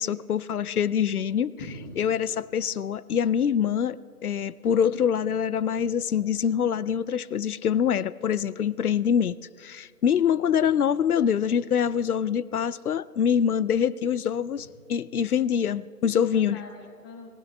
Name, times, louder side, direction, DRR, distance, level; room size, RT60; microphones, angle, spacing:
voice 1, 0.0-1.5 2.0-16.6, left 8 dB, 70° left, 18 dB, 0.6 m, -25 dB
voice 2, 1.6-2.1 14.6-14.7 16.1-17.3, left 2 dB, 15° left, 2 dB, 1.0 m, -42 dB
25.0 x 16.5 x 3.2 m, 2.3 s
figure-of-eight pair, 150°, 46 cm